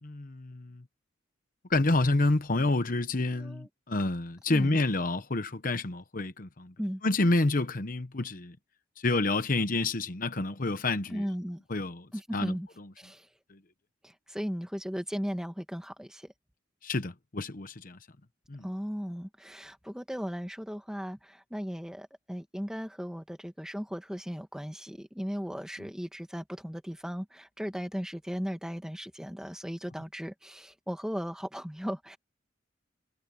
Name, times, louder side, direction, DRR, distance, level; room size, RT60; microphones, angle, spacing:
voice 1, 0.0-0.8 1.7-6.7 7.0-8.6 9.0-11.2 11.7-12.1 12.3-12.9 13.5-13.6 16.8-18.0 18.5-18.6, left 2 dB, 45° left, 1.0 m, -29 dB
voice 2, 3.3-3.7 4.5-4.8 6.8-7.0 11.1-11.6 12.1-12.7 13.0-13.3 14.0-16.3 18.6-32.2, equal, 5° right, 1.6 m, -37 dB
head